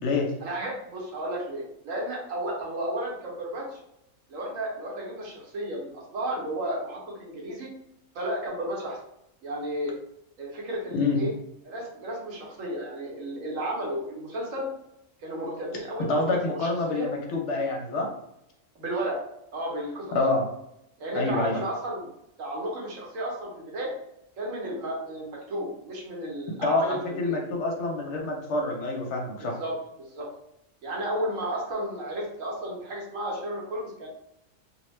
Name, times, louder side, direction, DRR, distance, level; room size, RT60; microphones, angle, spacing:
voice 1, 0.4-3.8 4.3-7.7 8.1-9.0 9.4-9.9 10.4-11.3 11.6-14.7 15.2-17.1 18.7-19.2 19.5-20.2 21.0-22.1 22.4-23.9 24.4-27.4 29.4-30.3 30.8-34.1, right 1 dB, 75° right, -2 dB, 1.2 m, -33 dB
voice 2, 16.1-18.1 20.1-20.4 21.1-21.5 26.6-29.6, left 3 dB, 65° left, 0 dB, 0.8 m, -27 dB
2.7 x 2.1 x 3.1 m, 0.81 s
omnidirectional pair, 1.4 m